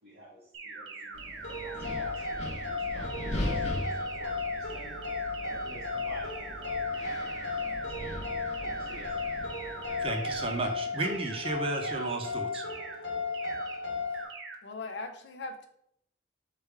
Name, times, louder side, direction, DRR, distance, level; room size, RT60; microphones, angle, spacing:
voice 1, 0.0-9.9, equal, 60° right, -10 dB, 1.4 m, -52 dB
sound 1, 0.5-10.6 10.9-11.4 11.7-12.2 12.5-13.0 13.3-13.8 14.1-14.6, right 4 dB, 85° right, 0.8 m, -43 dB
Wind, 1.1-10.7, left 1 dB, 40° left, 0.9 m, -40 dB
sound 2, 1.4-14.2, left 4 dB, 85° left, 1.1 m, -35 dB
voice 2, 10.0-12.6, right 2 dB, 30° right, 4 dB, 0.6 m, -33 dB
voice 3, 14.6-15.7, left 3 dB, 70° left, 5 dB, 0.5 m, -39 dB
3.3 x 3.3 x 4.6 m, 0.71 s
head